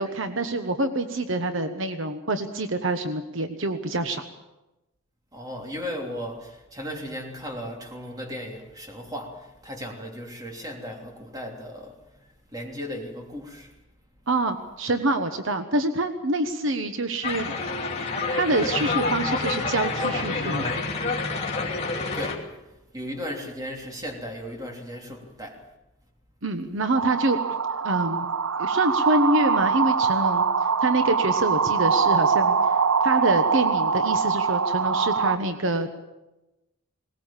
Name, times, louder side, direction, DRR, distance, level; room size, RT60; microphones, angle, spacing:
voice 1, 0.0-4.2 14.3-17.5 18.4-20.7 26.4-27.4 27.8-28.3 28.6-30.5 30.8-32.6 33.0-36.1, right 2 dB, 65° right, 1.2 m, -26 dB
voice 2, 5.3-13.7 22.0-25.6, equal, 15° right, 3.2 m, -36 dB
sound 1, 17.2-22.4, left 3 dB, 30° left, 2.8 m, -28 dB
sound 2, 27.0-35.4, right 5 dB, 85° right, 1.1 m, -23 dB
20.5 x 19.0 x 7.4 m
head